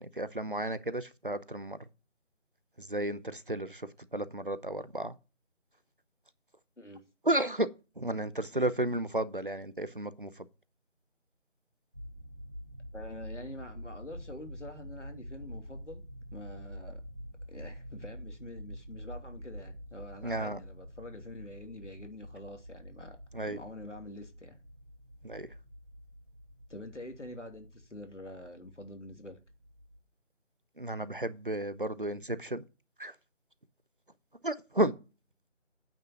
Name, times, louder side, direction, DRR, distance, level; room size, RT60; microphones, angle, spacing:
voice 1, 0.0-1.8 2.8-5.1 7.2-7.7 8.0-10.3 20.2-20.6 23.3-23.6 25.2-25.5 30.8-32.6 33.0-33.1 34.4-34.9, right 1 dB, 45° right, 0.8 m, -33 dB
sound 1, 11.9-30.0, equal, 25° right, 1.3 m, -47 dB
voice 2, 12.9-16.0 16.3-17.0 17.5-23.2 23.5-24.6 26.7-29.4, left 1 dB, 75° left, 2.9 m, -46 dB
9.0 x 6.3 x 5.8 m
figure-of-eight pair, 165°, 37 cm